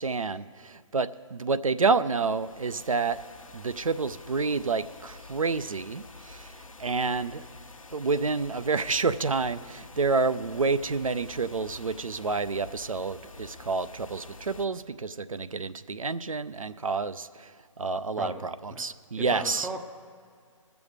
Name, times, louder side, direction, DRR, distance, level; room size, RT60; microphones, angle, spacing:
voice 1, 0.0-3.2 3.5-6.5 6.8-7.4 7.9-17.5 17.8-19.7, right 4 dB, 85° right, 13 dB, 0.5 m, -29 dB
sound 1, 2.0-14.7, left 3 dB, 80° left, 0.9 m, -48 dB
voice 2, 18.2-18.8 19.2-19.8, right 2 dB, 5° right, 4 dB, 0.4 m, -38 dB
19.0 x 7.0 x 4.9 m, 2.2 s
figure-of-eight pair, 135°, 17 cm